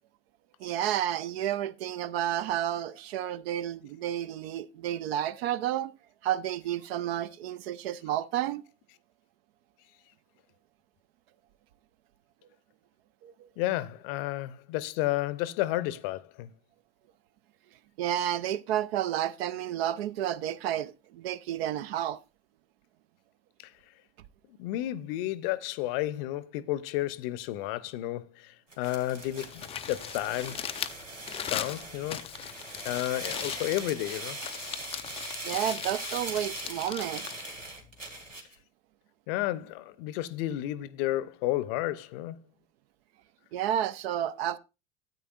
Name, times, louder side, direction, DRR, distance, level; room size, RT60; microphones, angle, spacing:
voice 1, 0.6-5.9 6.2-8.6 13.2-13.5 18.0-22.2 35.4-37.3 43.5-44.6, right 11 dB, 55° right, 0.6 m, -31 dB
voice 2, 13.6-16.5 23.6-23.7 24.5-30.7 31.5-32.6 32.8-34.4 39.3-42.4, left 15 dB, 50° left, 0.7 m, -32 dB
sound 1, 28.7-38.6, right 2 dB, 90° right, 2.0 m, -41 dB
Crumpling crinkling, 29.2-38.3, left 9 dB, 15° left, 0.4 m, -39 dB
13.0 x 8.4 x 2.4 m
figure-of-eight pair, 75°, 37 cm